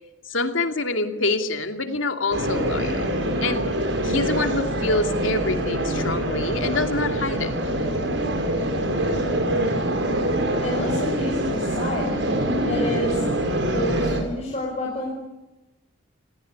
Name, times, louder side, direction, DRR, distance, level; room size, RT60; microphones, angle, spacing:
voice 1, 0.3-3.1 3.4-3.6 4.0-7.5, left 2 dB, 85° left, 6 dB, 2.8 m, -26 dB
sound 1, 2.3-14.2, right 1 dB, 65° right, 5.5 m, -24 dB
voice 2, 10.6-12.1 12.6-15.1, left 1 dB, 35° left, -1 dB, 5.5 m, -29 dB
28.0 x 19.0 x 9.6 m, 1.0 s
head